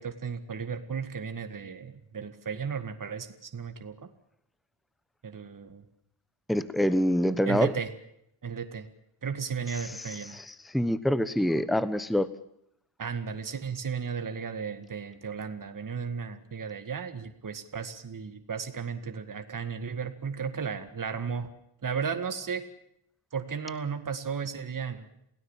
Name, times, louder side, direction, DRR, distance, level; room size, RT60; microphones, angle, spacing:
voice 1, 0.0-3.9 5.2-5.8 7.5-7.9 8.4-8.9 9.2-10.4 13.0-21.5 21.8-22.6 23.3-25.1, right 6 dB, 40° right, 8 dB, 2.1 m, -34 dB
voice 2, 6.5-7.7 10.1-12.3, equal, ahead, 14 dB, 1.0 m, -26 dB
28.5 x 17.5 x 7.4 m, 0.75 s
wide cardioid pair, 135°, 49 cm